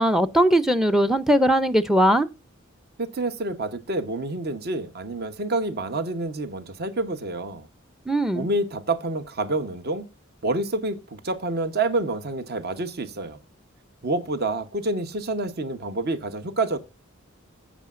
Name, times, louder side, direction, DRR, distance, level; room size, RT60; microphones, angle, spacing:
voice 1, 0.0-2.3 8.1-8.5, equal, ahead, 0.5 m, -19 dB
voice 2, 3.0-7.7 8.3-10.0 10.4-13.4 14.0-16.8, right 2 dB, 50° right, 0.9 m, -28 dB
11.5 x 8.5 x 2.4 m
head